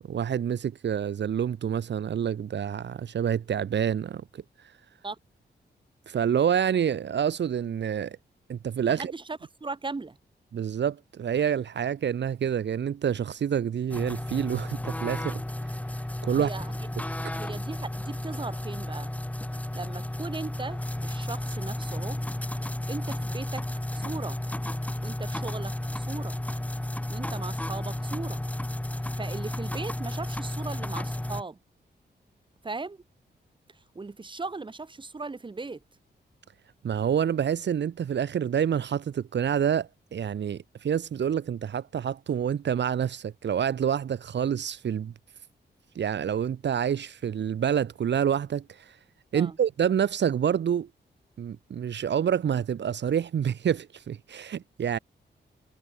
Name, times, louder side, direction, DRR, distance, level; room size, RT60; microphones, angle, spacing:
voice 1, 0.1-4.4 6.1-8.2 8.5-9.1 10.5-15.4 16.2-16.5 36.8-45.1 46.0-49.0 49.3-50.9 51.4-55.0, right 8 dB, 75° right, 2.3 m, -27 dB
voice 2, 8.9-10.2 16.3-16.8 17.3-19.1 19.7-22.2 22.9-23.7 23.9-24.4 25.0-26.4 27.1-28.4 29.2-31.6 32.6-33.0 33.9-35.8 49.3-49.6, right 3 dB, 25° right, 7.9 m, -38 dB
sound 1, 13.9-31.4, left 1 dB, 10° left, 2.6 m, -33 dB
wide cardioid pair, 155°, 18 cm